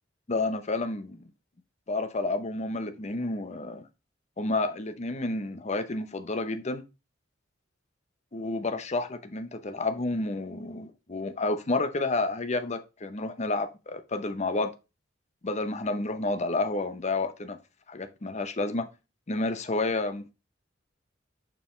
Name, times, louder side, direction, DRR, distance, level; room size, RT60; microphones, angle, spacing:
voice 1, 0.3-1.3 1.9-3.9 4.4-6.8 8.3-14.7 15.4-17.6 17.9-18.9 19.3-20.3, left 2 dB, 40° left, 0.8 m, -30 dB
6.9 x 5.4 x 3.1 m
head